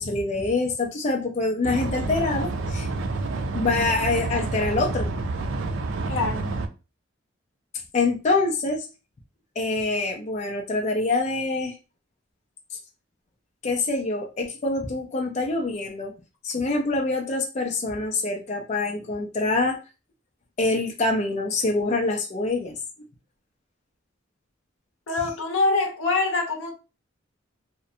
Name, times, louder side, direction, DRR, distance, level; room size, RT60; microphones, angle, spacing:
voice 1, 0.0-2.9 3.5-5.1 7.9-8.8 9.6-11.7 13.6-16.1 16.4-19.8 20.6-22.8, left 3 dB, 35° left, 0.4 m, -25 dB
sound 1, 1.6-6.7, right 3 dB, 75° right, 0.4 m, -29 dB
voice 2, 6.1-6.6 25.1-26.7, left 3 dB, 75° left, 0.7 m, -25 dB
2.5 x 2.1 x 2.6 m
head